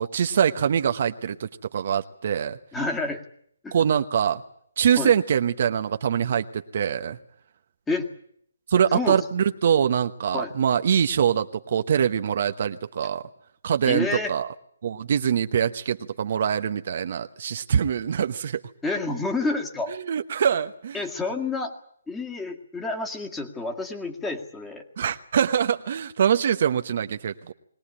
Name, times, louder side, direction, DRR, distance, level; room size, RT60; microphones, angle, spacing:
voice 1, 0.0-2.6 3.7-4.4 4.8-7.2 8.7-13.2 13.6-14.5 14.8-18.6 19.9-21.0 25.0-27.5, right 8 dB, 50° right, 8 dB, 1.0 m, -24 dB
voice 2, 2.7-3.2 3.6-3.8 5.0-5.1 7.9-8.1 8.9-9.2 10.3-10.5 13.8-14.3 18.8-19.9 20.9-21.7 22.1-24.8, left 3 dB, 10° left, 3 dB, 2.0 m, -29 dB
21.5 x 18.5 x 10.0 m, 0.68 s
hypercardioid pair, 160°, 0 cm